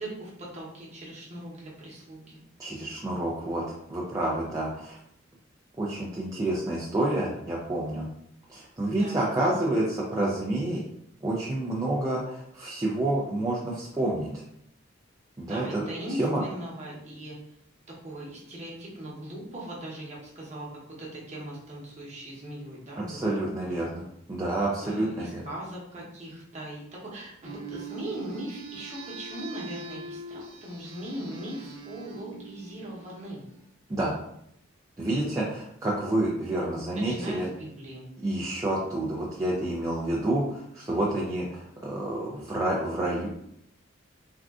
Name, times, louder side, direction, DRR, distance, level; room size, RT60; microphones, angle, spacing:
voice 1, 0.0-2.4 9.0-9.7 15.4-17.4 18.0-20.7 21.0-23.3 23.6-23.8 24.8-33.4 36.9-38.1, right 1 dB, 35° right, -5 dB, 0.9 m, -39 dB
voice 2, 2.6-5.0 5.8-8.1 8.5-10.8 11.2-14.3 15.4-15.8 16.2-16.4 23.1-25.4 33.9-34.2 35.0-37.5 38.2-43.3, right 1 dB, 15° right, -5 dB, 0.4 m, -29 dB
sound 1, 27.4-33.5, right 3 dB, 90° right, 0.8 m, -43 dB
3.5 x 2.5 x 2.4 m, 0.73 s
head